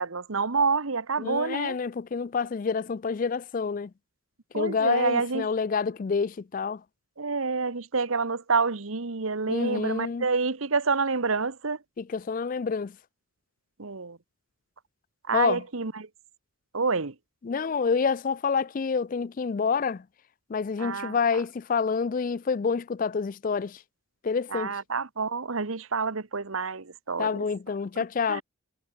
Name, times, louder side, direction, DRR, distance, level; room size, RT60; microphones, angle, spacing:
voice 1, 0.0-1.8 4.5-5.5 7.2-11.8 13.8-14.2 15.3-16.1 16.7-17.1 20.8-21.2 24.5-27.4 28.3-28.4, right 4 dB, 80° right, 1.2 m, -28 dB
voice 2, 1.2-3.9 4.5-6.8 9.5-10.3 12.0-13.0 15.3-15.6 17.4-20.0 20.5-23.8 24.2-24.7 27.2-28.4, left 5 dB, 40° left, 0.3 m, -28 dB
head